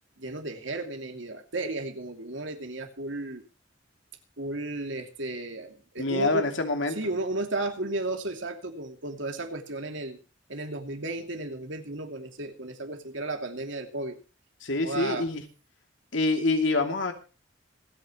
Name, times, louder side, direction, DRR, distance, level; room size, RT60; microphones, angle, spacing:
voice 1, 0.2-3.4 4.4-6.4 6.9-10.2 10.5-14.2 14.8-15.3, right 2 dB, 75° right, 5 dB, 2.7 m, -34 dB
voice 2, 6.0-7.0 14.6-15.4 16.1-17.1, left 2 dB, 75° left, 5 dB, 2.7 m, -26 dB
26.5 x 9.1 x 3.1 m, 0.33 s
head